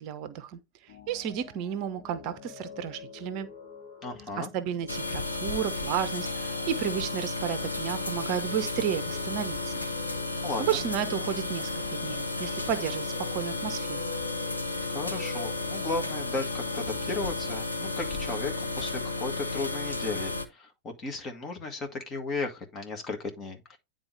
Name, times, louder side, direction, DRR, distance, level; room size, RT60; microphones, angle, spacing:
voice 1, 0.0-3.5 4.4-9.8 10.3-14.0, right 9 dB, 40° right, 0.7 m, -32 dB
sound 1, 0.9-19.4, left 5 dB, 50° left, 1.7 m, -48 dB
voice 2, 4.0-4.5 10.4-10.8 14.9-23.8, left 3 dB, 25° left, 2.0 m, -35 dB
sound 2, 4.9-20.4, left 3 dB, 85° left, 0.9 m, -33 dB
9.7 x 3.9 x 3.4 m
figure-of-eight pair, 90°, 0 cm